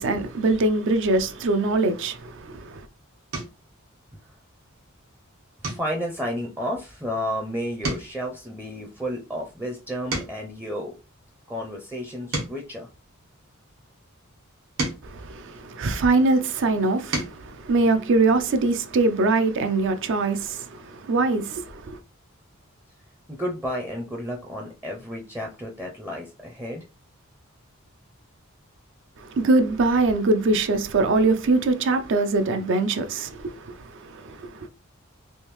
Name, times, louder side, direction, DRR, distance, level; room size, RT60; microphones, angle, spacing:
voice 1, 0.0-2.8 15.0-22.0 29.2-34.7, right 3 dB, 60° right, 0.4 m, -23 dB
sound 1, 3.3-3.7 4.2-4.6 4.9-5.1 5.6-7.4 7.7-10.6 11.2-13.7 14.4-16.2 16.8-17.5 18.9-19.0 19.3-19.5, right 2 dB, 80° right, 1.4 m, -35 dB
voice 2, 5.6-10.9 11.5-12.9 23.3-26.8, equal, 10° right, 0.5 m, -32 dB
3.4 x 2.6 x 3.0 m
head